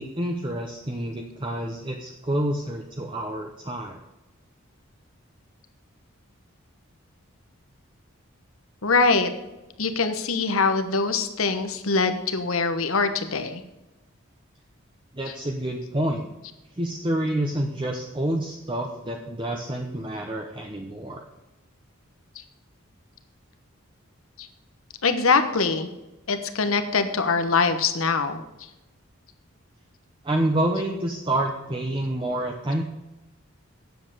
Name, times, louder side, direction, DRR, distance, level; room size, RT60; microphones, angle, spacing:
voice 1, 0.0-4.0 15.1-16.3 16.8-21.2 30.2-32.8, right 1 dB, 25° right, 2 dB, 0.8 m, -28 dB
voice 2, 8.8-9.3 9.8-13.6 24.4-24.5 25.0-25.9 26.3-28.4, left 4 dB, 80° left, 8 dB, 1.2 m, -23 dB
9.3 x 7.7 x 6.7 m, 1.0 s
head